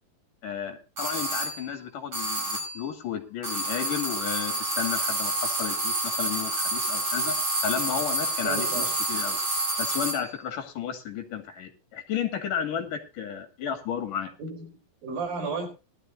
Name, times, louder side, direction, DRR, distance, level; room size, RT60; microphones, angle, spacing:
voice 1, 0.4-7.4 7.6-9.4 9.8-14.3, left 8 dB, 60° left, 3.8 m, -33 dB
sound 1, 1.0-1.7 2.1-2.9 3.4-10.3, right 2 dB, 30° right, 5.9 m, -29 dB
voice 2, 8.4-8.9 14.4-15.7, right 4 dB, 65° right, 6.4 m, -33 dB
19.5 x 12.5 x 2.7 m
omnidirectional pair, 4.4 m